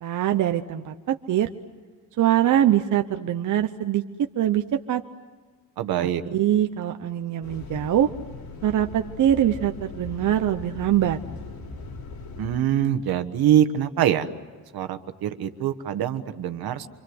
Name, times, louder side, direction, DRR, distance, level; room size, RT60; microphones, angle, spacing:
voice 1, 0.0-1.5 2.2-4.0 4.4-5.0 6.0-8.1 8.6-11.2, right 11 dB, 55° right, 6 dB, 0.9 m, -23 dB
voice 2, 5.8-6.2 12.4-14.3 14.7-16.9, right 10 dB, 75° right, 9 dB, 1.5 m, -24 dB
sound 1, 7.4-12.6, left 3 dB, 70° left, 3.5 m, -39 dB
27.0 x 26.5 x 7.9 m, 1.4 s
cardioid pair, 165°, 37 cm